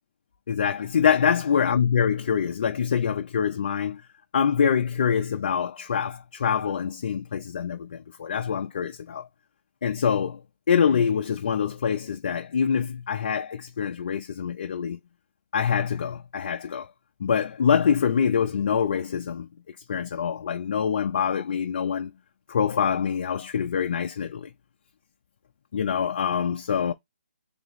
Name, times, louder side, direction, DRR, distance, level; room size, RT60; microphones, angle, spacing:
voice 1, 0.5-4.0 4.3-9.3 9.8-10.4 10.7-15.0 15.5-16.9 17.2-19.5 19.9-22.1 22.5-24.5 25.7-26.9, left 7 dB, 40° left, 0.4 m, -25 dB
3.3 x 3.0 x 4.0 m
hypercardioid pair, 170°, 7 cm